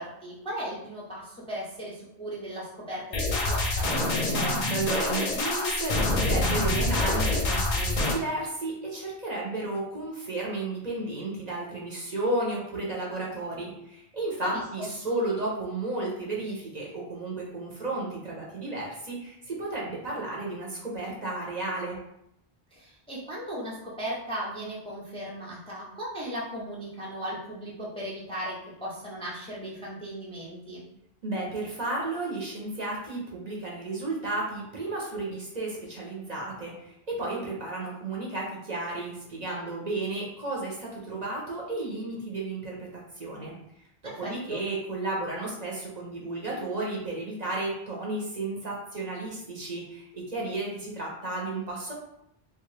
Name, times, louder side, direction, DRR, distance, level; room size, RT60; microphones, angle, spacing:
voice 1, 0.0-3.9 14.5-14.9 22.7-30.8 44.0-44.7, equal, 5° left, -6 dB, 0.5 m, -37 dB
sound 1, 3.1-8.1, left 2 dB, 50° left, 0.6 m, -26 dB
voice 2, 4.2-22.0 31.2-42.9 43.2-43.6 44.2-51.9, right 2 dB, 45° right, -3 dB, 0.7 m, -33 dB
3.2 x 2.3 x 3.2 m, 0.78 s
omnidirectional pair, 1.0 m